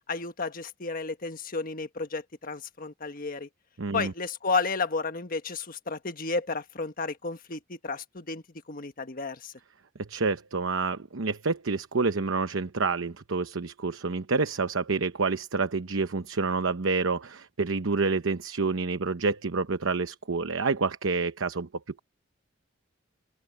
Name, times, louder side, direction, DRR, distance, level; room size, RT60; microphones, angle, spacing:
voice 1, 0.1-3.5 3.9-8.4 8.7-9.5, left 4 dB, 45° left, 1.4 m, -32 dB
voice 2, 3.8-4.1 10.0-21.7, right 4 dB, 85° right, 0.9 m, -28 dB
head